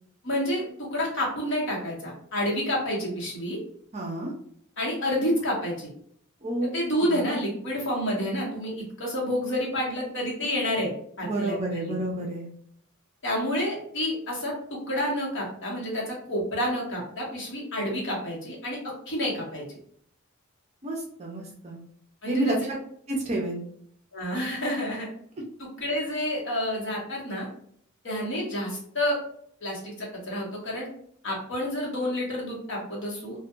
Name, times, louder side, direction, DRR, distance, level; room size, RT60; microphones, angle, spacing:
voice 1, 0.2-0.6 0.9-3.6 4.8-5.9 6.6-10.9 11.2-11.5 11.8-11.9 13.2-18.8 19.1-19.6 22.2-22.6 24.1-25.1 25.6-27.5 28.0-29.2 29.6-30.9 31.2-33.4, equal, 55° left, -3 dB, 1.0 m, -29 dB
voice 2, 3.9-4.3 6.4-6.7 7.0-7.2 11.2-12.5 20.8-21.8 22.3-22.7 23.1-23.7, right 1 dB, 30° right, -1 dB, 0.5 m, -29 dB
2.7 x 2.2 x 2.4 m, 0.64 s
head